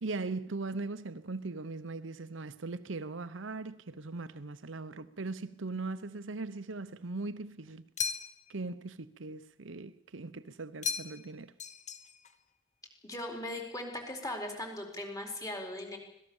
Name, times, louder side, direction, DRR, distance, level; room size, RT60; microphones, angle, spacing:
voice 1, 0.0-7.8 8.5-11.5, right 3 dB, 80° right, 0.9 m, -39 dB
sound 1, 8.0-8.6 10.8-11.3 11.6-12.4, left 6 dB, 40° left, 1.2 m, -36 dB
voice 2, 13.0-16.0, left 1 dB, 20° left, 4.5 m, -39 dB
25.0 x 18.5 x 7.2 m
head